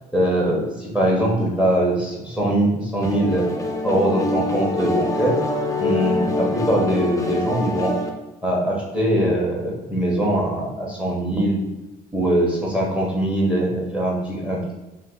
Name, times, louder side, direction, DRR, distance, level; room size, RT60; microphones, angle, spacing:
voice 1, 0.1-3.4 3.8-5.4 5.8-7.9 8.4-11.6 12.1-14.7, right 1 dB, 5° right, -2 dB, 0.9 m, -22 dB
sound 1, 3.0-8.1, left 2 dB, 20° left, 0.4 m, -25 dB
2.7 x 2.4 x 3.7 m, 1.1 s
cardioid pair, 110°, 17 cm